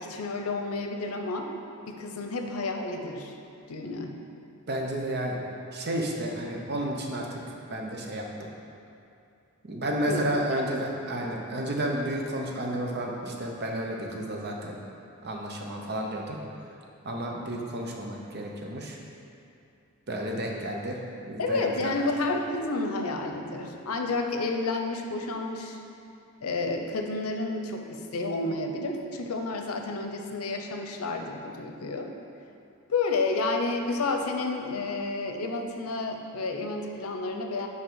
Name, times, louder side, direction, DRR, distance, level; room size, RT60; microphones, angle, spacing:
voice 1, 0.0-1.5 1.9-3.3 3.7-4.1 10.1-10.2 10.6-10.7 21.4-25.8 26.4-32.1 32.9-37.7, left 3 dB, 85° left, 4 dB, 0.7 m, -30 dB
voice 2, 4.7-5.4 5.7-7.4 7.7-8.2 9.6-14.8 15.2-16.4 17.0-19.0 20.1-21.0 21.3-21.7 22.0-22.1, right 1 dB, 50° right, 0 dB, 0.9 m, -31 dB
5.8 x 4.7 x 5.5 m, 2.6 s
head